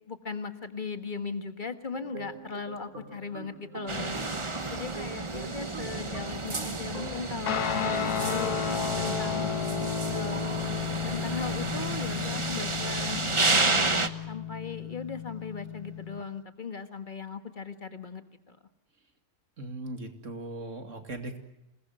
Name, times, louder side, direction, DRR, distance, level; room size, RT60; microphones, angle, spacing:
voice 1, 0.1-4.2 4.7-9.5 10.1-10.6 11.0-13.9 14.3-18.6, left 4 dB, 30° left, 8 dB, 1.7 m, -38 dB
sound 1, 1.9-7.2, right 4 dB, 70° right, 3.3 m, -44 dB
sound 2, 3.9-14.1, right 3 dB, 20° right, 1.1 m, -31 dB
Guitar, 7.5-16.2, left 8 dB, 75° left, 1.7 m, -33 dB
voice 2, 19.6-21.4, right 2 dB, 50° right, 6 dB, 2.8 m, -38 dB
27.0 x 20.0 x 9.4 m, 0.89 s
omnidirectional pair, 1.6 m